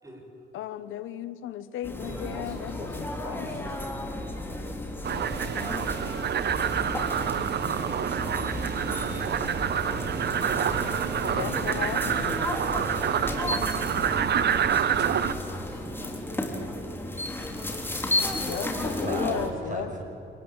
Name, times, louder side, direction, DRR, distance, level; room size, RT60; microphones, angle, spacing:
voice 1, 0.0-0.5 2.0-5.9 10.3-11.7 12.0-13.3 14.2-17.0 18.1-18.9, right 1 dB, 15° right, 1 dB, 7.9 m, -44 dB
voice 2, 0.5-3.6 11.2-12.5 18.5-19.9, left 11 dB, 85° left, 13 dB, 1.2 m, -35 dB
sound 1, 1.8-19.5, left 1 dB, 10° left, 3.9 m, -33 dB
sound 2, 5.0-15.3, right 8 dB, 55° right, 1.2 m, -27 dB
voice 3, 8.8-10.4 18.7-20.1, right 2 dB, 40° right, 4 dB, 6.1 m, -38 dB
27.5 x 19.5 x 8.9 m, 2.8 s
cardioid pair, 90°, 20 cm